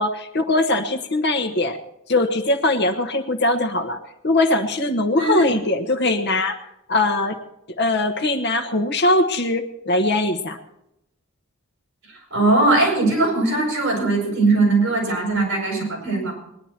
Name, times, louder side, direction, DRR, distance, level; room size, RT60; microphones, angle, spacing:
voice 1, 0.0-1.8 2.1-4.0 4.2-7.4 7.8-10.6, left 2 dB, 55° left, 8 dB, 1.2 m, -21 dB
voice 2, 12.3-16.3, right 2 dB, 60° right, 0 dB, 7.3 m, -20 dB
20.5 x 11.0 x 4.4 m, 0.83 s
head